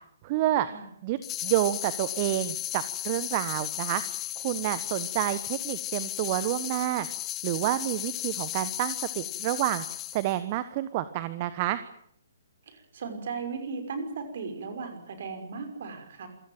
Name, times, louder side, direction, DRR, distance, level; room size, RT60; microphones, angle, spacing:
voice 1, 0.2-0.7 1.0-4.0 4.4-7.1 7.4-9.8 10.1-11.8, right 14 dB, 35° right, 13 dB, 1.3 m, -29 dB
sound 1, 1.2-10.4, left 14 dB, 20° left, 1.0 m, -35 dB
voice 2, 12.7-16.3, right 4 dB, 50° right, 7 dB, 6.1 m, -36 dB
27.5 x 16.5 x 9.1 m, 0.68 s
figure-of-eight pair, 130°, 0 cm